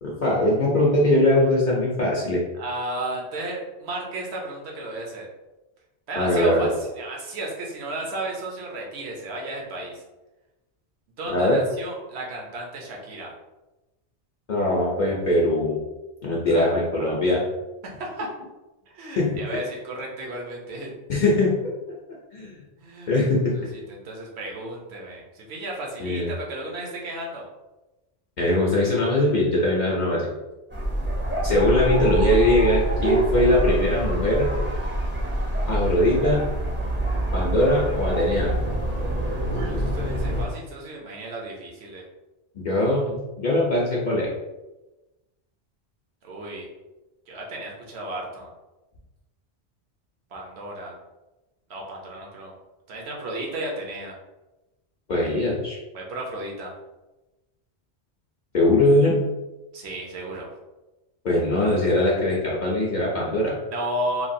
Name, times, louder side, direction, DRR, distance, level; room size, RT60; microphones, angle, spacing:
voice 1, 0.0-2.4 6.2-6.7 11.3-11.6 14.5-15.8 16.2-17.4 19.2-19.4 21.1-21.5 22.3-22.5 23.1-23.7 26.0-26.3 28.4-30.3 31.4-34.5 35.7-36.4 37.3-38.5 42.6-44.3 55.1-55.8 58.5-59.1 61.2-63.5, left 1 dB, 50° left, -5 dB, 0.6 m, -21 dB
voice 2, 2.5-5.3 6.1-10.0 11.2-13.3 16.5-17.2 17.8-18.3 18.9-21.0 22.8-23.1 23.5-27.5 39.5-42.0 46.2-46.7 47.3-48.5 50.3-51.0 51.7-52.5 52.9-54.1 55.9-56.7 59.7-60.5 63.7-64.3, right 1 dB, 70° right, -1 dB, 1.0 m, -33 dB
sound 1, 30.7-40.5, right 1 dB, 15° right, 0.5 m, -25 dB
3.2 x 2.3 x 2.6 m, 1.1 s
omnidirectional pair, 1.1 m